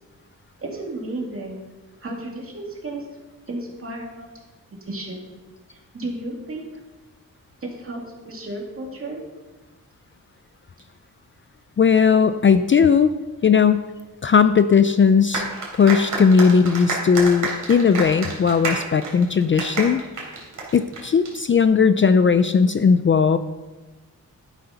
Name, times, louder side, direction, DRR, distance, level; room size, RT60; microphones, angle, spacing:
voice 1, 0.6-1.6 2.0-3.0 3.5-4.3 4.8-5.2 5.7-6.6 7.6-9.2, right 2 dB, 40° right, -1 dB, 2.3 m, -33 dB
voice 2, 11.8-13.1 13.4-13.8 14.2-15.5 15.7-20.0 20.7-23.4, left 6 dB, 40° left, 11 dB, 0.4 m, -17 dB
sound 1, 15.3-21.3, right 3 dB, 65° right, 3.3 m, -29 dB
12.5 x 6.7 x 5.8 m, 1.2 s
wide cardioid pair, 165°, 33 cm